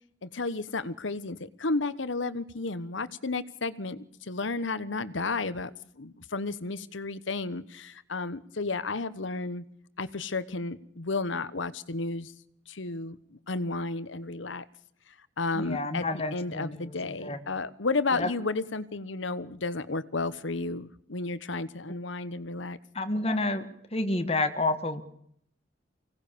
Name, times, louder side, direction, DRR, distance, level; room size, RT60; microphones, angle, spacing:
voice 1, 0.2-9.6 10.0-12.3 12.7-14.6 15.4-22.8, left 3 dB, 75° left, 16 dB, 1.1 m, -32 dB
voice 2, 15.5-17.4 18.1-18.3 21.9-22.0 22.9-23.7 23.9-25.0, left 2 dB, 30° left, 8 dB, 1.7 m, -30 dB
24.5 x 18.0 x 6.9 m, 0.69 s
head